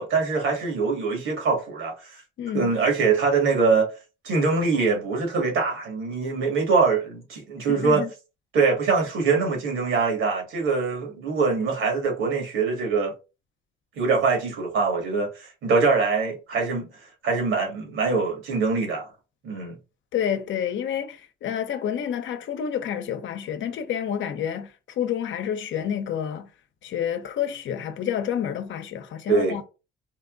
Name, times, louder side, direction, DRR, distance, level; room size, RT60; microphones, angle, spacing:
voice 1, 0.0-2.2 2.5-3.9 4.2-8.0 8.5-13.1 14.0-16.9 17.2-19.1 19.4-19.8 29.3-29.6, right 4 dB, 80° right, 2.1 m, -23 dB
voice 2, 2.4-2.7 7.7-8.1 20.1-26.5 26.8-29.6, left 9 dB, 70° left, 0.8 m, -29 dB
4.3 x 2.3 x 3.9 m
cardioid pair, 90°, 20 cm